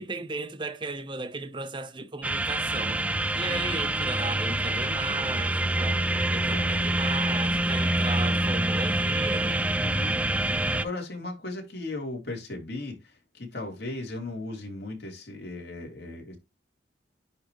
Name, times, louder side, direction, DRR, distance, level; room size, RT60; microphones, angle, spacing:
voice 1, 0.0-3.0 3.3-6.0 6.3-9.7, right 3 dB, 25° right, 0.7 m, -36 dB
sound 1, 2.2-10.9, right 1 dB, 10° right, 0.3 m, -26 dB
voice 2, 3.3-3.8 6.5-6.8 9.8-10.2 10.7-16.4, left 2 dB, 60° left, 3.1 m, -37 dB
9.9 x 3.3 x 3.0 m
head